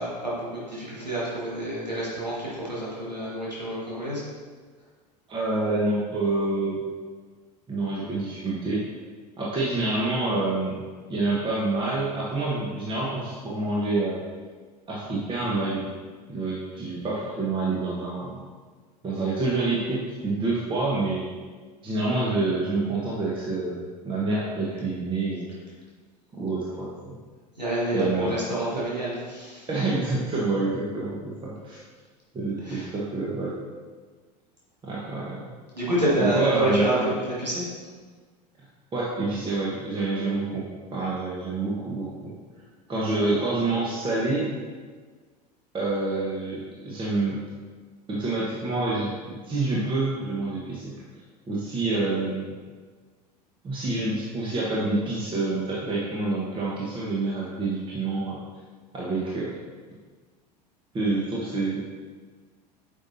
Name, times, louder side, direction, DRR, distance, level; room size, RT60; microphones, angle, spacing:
voice 1, 0.0-2.4 2.6-4.2 27.6-29.7 32.7-32.9 35.7-37.6, right 1 dB, 90° right, -7 dB, 1.9 m, -28 dB
voice 2, 5.3-6.8 7.7-8.8 9.4-10.8 11.1-14.2 14.9-15.8 16.3-18.4 19.0-21.3 21.8-25.5 26.4-27.1 27.9-28.4 28.7-28.8 29.7-31.8 32.3-33.6 34.8-35.5 36.2-37.1 38.9-40.6 40.9-42.3 42.9-44.5 45.7-47.4 48.1-50.9 51.5-52.5 53.6-58.4 58.9-59.6 60.9-61.9, right 2 dB, 25° right, -6 dB, 1.4 m, -27 dB
8.6 x 5.6 x 2.8 m, 1.5 s
figure-of-eight pair, 75°, 21 cm